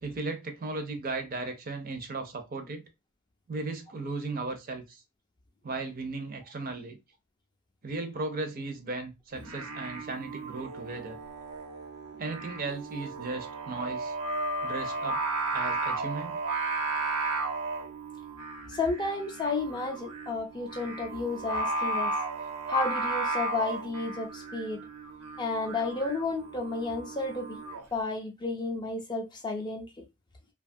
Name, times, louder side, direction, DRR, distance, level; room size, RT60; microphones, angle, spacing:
voice 1, 0.0-2.8 3.5-5.0 5.6-7.0 7.8-11.2 12.2-14.1 14.6-15.2 15.5-16.4, right 3 dB, 40° right, 0.5 m, -36 dB
Singing, 9.3-27.8, right 2 dB, 90° right, 0.9 m, -34 dB
voice 2, 18.7-22.1 22.7-24.8 25.4-27.6 27.9-30.0, left 3 dB, 20° left, 0.4 m, -32 dB
2.7 x 2.3 x 2.6 m
head